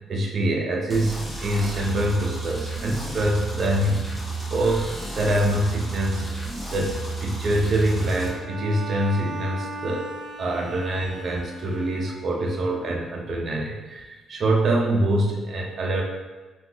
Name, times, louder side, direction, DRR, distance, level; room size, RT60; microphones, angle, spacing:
voice 1, 0.1-4.1 4.5-6.4 6.7-10.1 10.4-16.0, right 1 dB, 40° right, -1 dB, 0.4 m, -25 dB
sound 1, 0.9-8.3, right 2 dB, 10° left, 0.6 m, -32 dB
Bowed string instrument, 7.9-12.5, equal, 60° left, 0.8 m, -37 dB
2.7 x 2.3 x 3.7 m, 1.3 s
cardioid pair, 150°, 0 cm